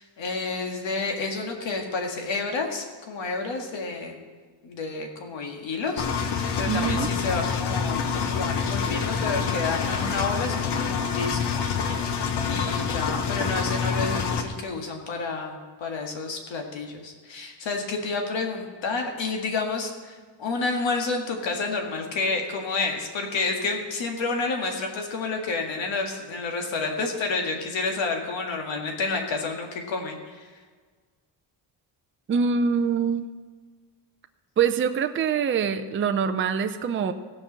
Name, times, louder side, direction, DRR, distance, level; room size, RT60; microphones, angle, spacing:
voice 1, 0.0-4.2 4.6-11.6 12.0-30.5, left 3 dB, 90° left, 2 dB, 2.0 m, -30 dB
Engine, 6.0-14.4, left 6 dB, 65° left, 1.1 m, -27 dB
voice 2, 6.7-7.1 32.3-33.3 34.6-37.1, right 6 dB, 30° right, 7 dB, 0.5 m, -24 dB
16.0 x 5.4 x 7.3 m, 1.5 s
wide cardioid pair, 170°, 44 cm